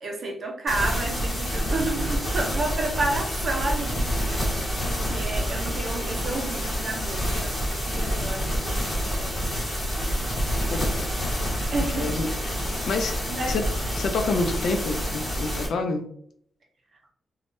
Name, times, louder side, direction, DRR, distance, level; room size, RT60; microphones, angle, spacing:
voice 1, 0.0-9.5 11.7-12.4 13.2-13.6, right 2 dB, 50° right, 1 dB, 0.7 m, -31 dB
sound 1, 0.7-15.7, equal, 10° left, 1.4 m, -28 dB
voice 2, 10.7-11.1 11.9-12.6 12.9-13.1 13.5-13.6 14.0-16.1, left 3 dB, 75° left, 5 dB, 0.5 m, -28 dB
3.4 x 2.3 x 2.6 m, 0.63 s
wide cardioid pair, 160°, 0 cm